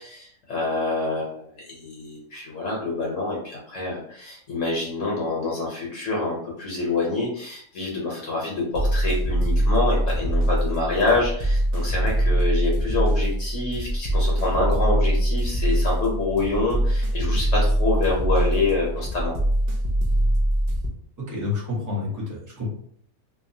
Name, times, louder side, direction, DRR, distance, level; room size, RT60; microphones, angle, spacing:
voice 1, 0.0-19.3, left 3 dB, 65° left, -3 dB, 1.0 m, -26 dB
sound 1, 8.7-20.9, right 1 dB, 75° right, 0.4 m, -23 dB
voice 2, 21.3-22.7, left 3 dB, 20° right, -5 dB, 0.6 m, -29 dB
2.8 x 2.2 x 2.6 m, 0.65 s
omnidirectional pair, 1.5 m